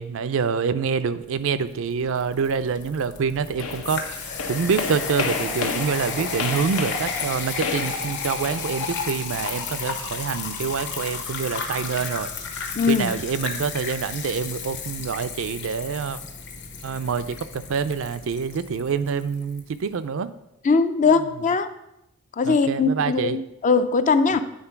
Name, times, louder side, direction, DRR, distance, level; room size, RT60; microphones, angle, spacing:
voice 1, 0.0-16.2 16.8-20.3 22.4-23.4, right 6 dB, 65° right, 13 dB, 0.4 m, -26 dB
sound 1, 1.7-19.7, left 5 dB, 55° left, 1.2 m, -33 dB
sound 2, 3.6-8.9, left 4 dB, 80° left, 0.9 m, -32 dB
voice 2, 12.7-13.1 20.6-21.7 22.4-24.4, left 4 dB, 35° left, 11 dB, 0.4 m, -20 dB
8.8 x 3.8 x 5.7 m, 0.86 s
head